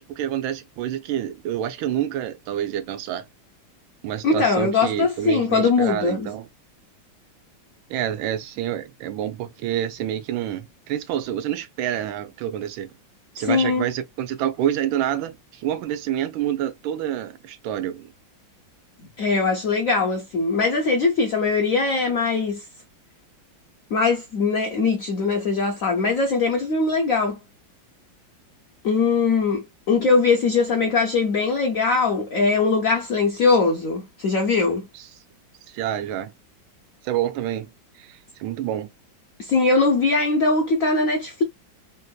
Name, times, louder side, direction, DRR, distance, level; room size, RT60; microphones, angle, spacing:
voice 1, 0.0-3.2 4.0-6.5 7.9-12.9 13.4-18.1 34.9-35.1 35.7-36.3 37.0-37.7 38.0-38.9, right 11 dB, 85° right, 1.3 m, -28 dB
voice 2, 4.2-6.3 13.4-13.9 19.2-22.6 23.9-27.4 28.8-34.9 39.4-41.4, left 4 dB, 75° left, 0.7 m, -21 dB
3.4 x 2.6 x 2.2 m
omnidirectional pair, 2.1 m